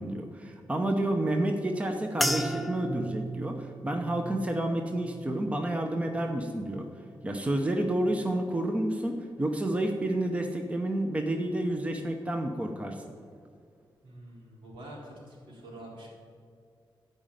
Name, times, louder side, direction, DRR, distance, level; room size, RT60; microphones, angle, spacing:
voice 1, 0.0-6.8 7.2-13.0, right 1 dB, 15° right, 4 dB, 0.8 m, -30 dB
sound 1, 2.2-6.7 7.1-7.7 8.3-8.5, right 1 dB, ahead, 0.4 m, -37 dB
voice 2, 14.0-16.1, right 1 dB, 80° right, -4 dB, 3.8 m, -46 dB
13.0 x 5.2 x 9.1 m, 2.2 s
wide cardioid pair, 150°, 9 cm